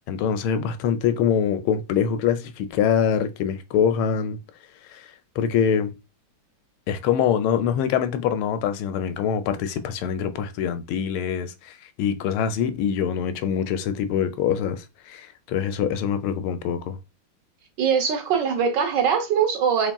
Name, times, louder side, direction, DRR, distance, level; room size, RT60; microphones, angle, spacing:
voice 1, 0.1-4.4 4.9-5.0 5.4-5.9 6.9-11.7 12.0-17.0, left 8 dB, 85° left, 1.4 m, -24 dB
voice 2, 17.8-19.9, right 7 dB, 65° right, 1.3 m, -22 dB
4.3 x 3.5 x 2.2 m
omnidirectional pair, 2.3 m